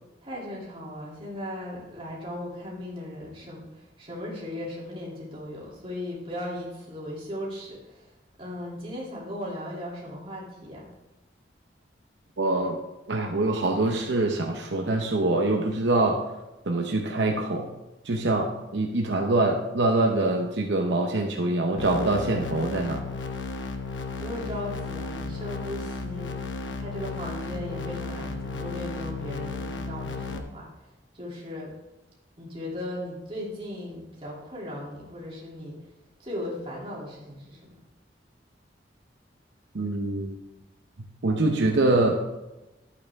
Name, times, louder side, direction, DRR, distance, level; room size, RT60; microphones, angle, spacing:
voice 1, 0.2-8.1 8.4-10.9 24.2-26.3 26.7-30.7 31.1-31.7 32.4-35.8 36.2-37.6, left 1 dB, 30° right, -5 dB, 2.9 m, -37 dB
voice 2, 12.4-12.8 13.1-16.2 16.7-17.7 18.1-23.0 39.7-40.4 41.2-42.2, right 2 dB, 75° right, 2 dB, 0.8 m, -24 dB
sound 1, 21.8-30.4, left 3 dB, 90° left, 1.0 m, -34 dB
11.0 x 8.5 x 3.5 m, 1.0 s
head